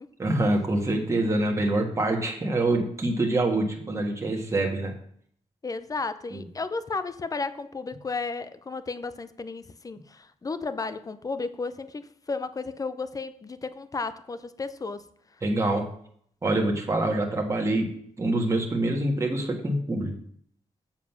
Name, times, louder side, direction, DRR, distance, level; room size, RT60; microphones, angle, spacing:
voice 1, 0.2-4.9 6.3-6.4 15.4-15.8 16.4-17.9 18.2-20.1, right 2 dB, 20° right, 1.6 m, -25 dB
voice 2, 5.6-15.1, left 4 dB, 25° left, 0.6 m, -33 dB
7.4 x 7.4 x 5.8 m
wide cardioid pair, 135°, 13 cm